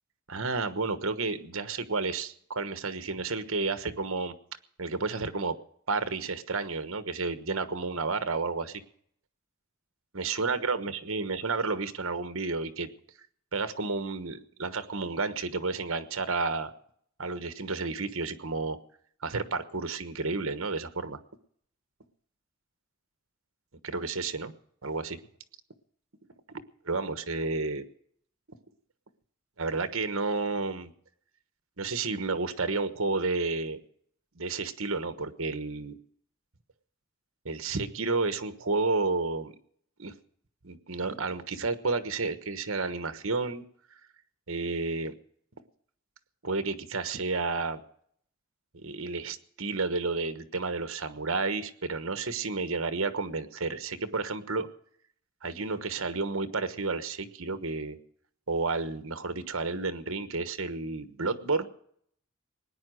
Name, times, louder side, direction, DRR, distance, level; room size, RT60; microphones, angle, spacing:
voice 1, 0.3-4.3 4.8-5.6 5.9-8.8 10.1-12.9 13.5-16.7 17.2-18.8 19.2-21.2 23.8-24.5 24.8-25.2 26.5-27.8 29.6-30.9 31.8-33.8 34.3-36.0 37.4-39.5 40.0-40.1 40.6-43.6 44.5-45.1 46.4-47.8 48.7-54.7 55.4-58.0 58.5-61.7, right 3 dB, 65° right, 11 dB, 1.2 m, -31 dB
19.5 x 10.0 x 6.3 m, 0.64 s
head